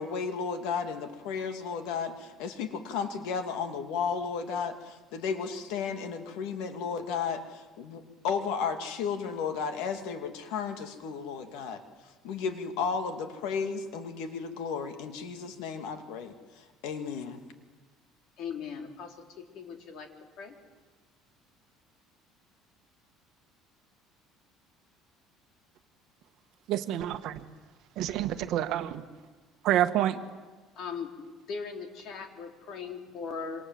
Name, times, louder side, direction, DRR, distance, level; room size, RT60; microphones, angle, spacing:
voice 1, 0.0-11.8 12.2-17.4, left 6 dB, 80° left, 6 dB, 2.6 m, -34 dB
voice 2, 18.4-19.2 19.5-20.1 20.4-20.5 30.8-31.1 31.5-33.7, left 5 dB, 50° left, 3 dB, 3.7 m, -38 dB
voice 3, 26.7-27.4 28.0-29.0 29.6-30.2, right 12 dB, 55° right, 9 dB, 1.5 m, -28 dB
26.5 x 26.0 x 7.8 m, 1.3 s
cardioid pair, 160°, 0 cm